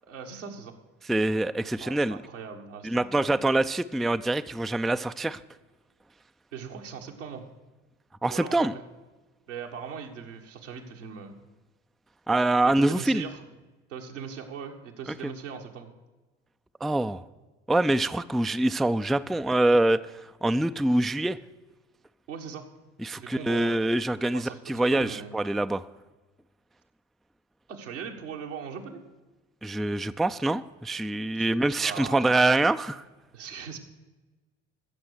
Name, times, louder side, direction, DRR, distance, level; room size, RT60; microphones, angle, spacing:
voice 1, 0.0-0.7 1.7-3.4 6.5-7.5 8.3-8.8 9.5-11.3 12.6-13.4 13.9-15.9 22.3-22.7 23.1-23.9 24.2-25.3 27.7-29.0 31.3-32.3 33.3-33.8, right 6 dB, 85° right, 1 dB, 1.6 m, -40 dB
voice 2, 1.1-2.2 2.8-5.4 8.2-8.7 12.3-13.2 16.8-17.2 17.7-20.0 20.4-21.4 23.0-25.8 29.6-33.0, right 2 dB, ahead, 11 dB, 0.3 m, -25 dB
15.5 x 6.9 x 6.5 m, 1.2 s
figure-of-eight pair, 55°, 36 cm